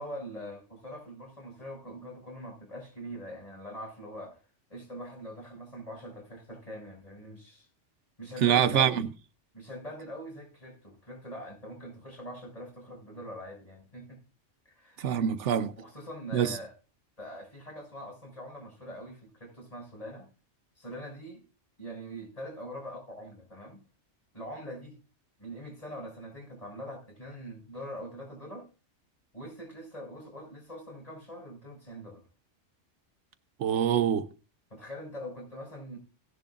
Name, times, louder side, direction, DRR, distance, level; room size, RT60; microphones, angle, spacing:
voice 1, 0.0-4.4 4.7-7.7 8.2-9.1 9.5-14.2 14.6-15.3 15.7-16.7 17.2-20.3 20.8-21.4 21.8-23.8 24.3-25.0 25.4-28.7 29.3-32.2 34.7-36.0, equal, 30° left, 6.3 m, -43 dB
voice 2, 8.4-9.0 15.0-15.7 16.3-16.6 33.6-34.3, right 9 dB, 80° right, 1.1 m, -25 dB
17.0 x 10.5 x 2.5 m
omnidirectional pair, 1.2 m